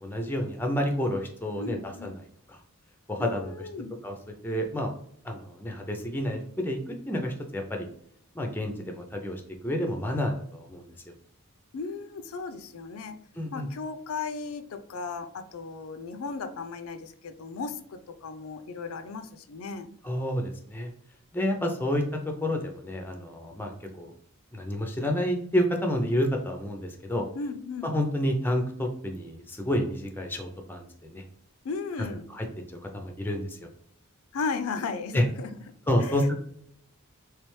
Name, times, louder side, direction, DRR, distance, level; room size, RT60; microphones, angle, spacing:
voice 1, 0.0-2.1 2.5-2.6 3.1-3.5 4.0-4.1 4.4-4.9 5.2-7.9 8.3-10.9 13.4-13.7 20.0-20.9 21.3-22.0 22.4-24.1 24.5-27.2 27.8-31.2 32.3-33.7 35.1-35.2 35.9-36.3, equal, 10° left, 3 dB, 0.4 m, -29 dB
voice 2, 1.6-2.2 3.2-3.9 11.7-13.2 13.5-19.9 27.3-27.9 31.6-32.3 34.3-35.5 36.0-36.3, left 4 dB, 75° left, 9 dB, 0.4 m, -36 dB
3.3 x 3.2 x 3.1 m, 0.67 s
head